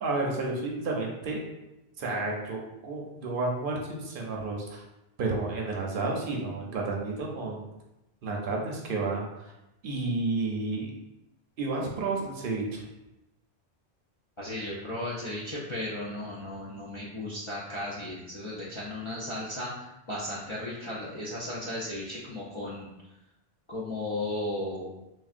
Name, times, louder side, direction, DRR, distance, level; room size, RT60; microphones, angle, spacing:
voice 1, 0.0-1.4 2.0-4.8 5.2-7.7 8.2-9.5 9.8-10.9 11.6-12.8, right 3 dB, 60° right, -1 dB, 0.7 m, -31 dB
voice 2, 14.4-22.9 23.7-24.9, left 1 dB, 50° left, -7 dB, 0.4 m, -35 dB
3.5 x 2.2 x 2.4 m, 0.94 s
omnidirectional pair, 1.1 m